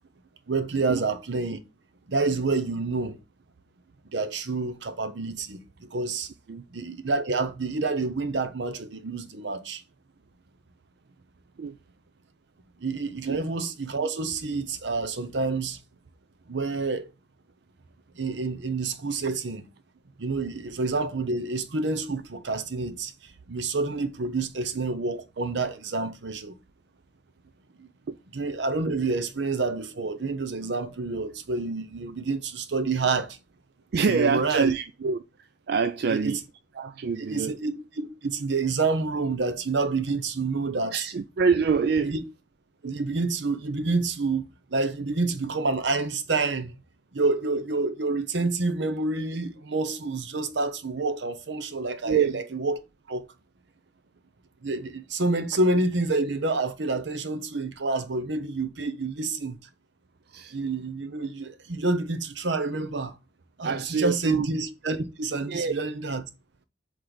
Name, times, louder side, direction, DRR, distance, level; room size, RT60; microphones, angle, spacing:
voice 1, 0.5-1.6 2.1-3.2 4.1-6.3 6.7-9.8 12.8-15.8 16.5-17.1 18.1-19.7 20.2-26.5 27.8-27.9 28.3-33.4 34.1-34.7 36.1-36.4 37.3-41.1 42.0-42.2 42.8-46.8 47.1-52.8 53.1-53.3 54.6-59.6 60.5-63.1 63.6-66.3, right 3 dB, 80° right, 0.8 m, -28 dB
voice 2, 33.9-36.4 36.8-37.5 40.9-42.1 52.0-52.4 60.3-60.6 63.6-64.5 65.5-65.8, right 5 dB, 60° right, 0.4 m, -26 dB
7.8 x 3.2 x 3.9 m
head